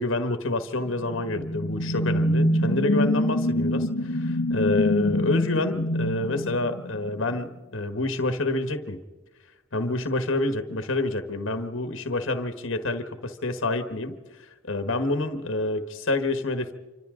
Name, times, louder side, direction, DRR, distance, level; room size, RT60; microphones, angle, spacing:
voice 1, 0.0-9.0 9.7-16.7, left 2 dB, 65° left, 8 dB, 1.4 m, -28 dB
sound 1, 0.9-7.4, left 1 dB, 85° left, 1.2 m, -25 dB
27.5 x 25.0 x 3.8 m, 1.2 s
head